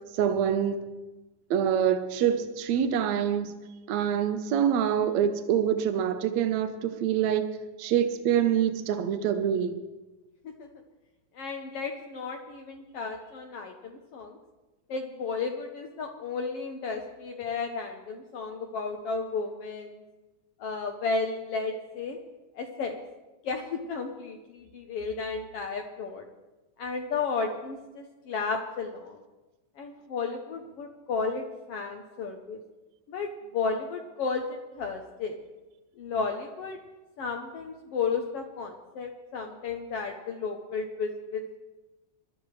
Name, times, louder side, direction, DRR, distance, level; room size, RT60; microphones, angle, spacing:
voice 1, 0.1-0.8 1.5-3.5 3.9-7.5 7.8-9.8, right 9 dB, 70° right, 8 dB, 2.0 m, -25 dB
voice 2, 11.4-14.4 14.9-20.0 20.6-22.2 22.6-23.0 23.4-26.2 26.8-29.2 29.8-32.6 33.1-35.4 36.0-36.8 37.2-41.6, left 4 dB, 70° left, 4 dB, 1.5 m, -33 dB
22.5 x 12.0 x 3.2 m, 1.1 s
omnidirectional pair, 3.6 m